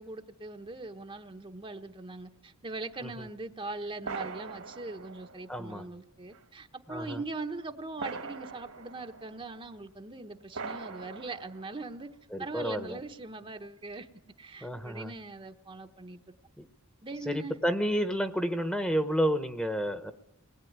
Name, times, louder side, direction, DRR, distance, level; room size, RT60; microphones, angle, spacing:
voice 1, 0.0-12.1 12.4-14.1 14.4-16.2 17.0-17.6, right 2 dB, 25° right, 6 dB, 1.0 m, -41 dB
sound 1, 2.9-3.0 4.0-5.8 6.3-6.4 8.0-9.6 10.5-12.1, right 4 dB, 70° right, 2.0 m, -42 dB
voice 2, 5.5-5.9 6.9-7.2 12.3-13.0 14.6-15.1 16.6-16.7 17.3-20.1, equal, 5° left, 9 dB, 1.1 m, -30 dB
24.5 x 20.0 x 9.5 m, 0.89 s
head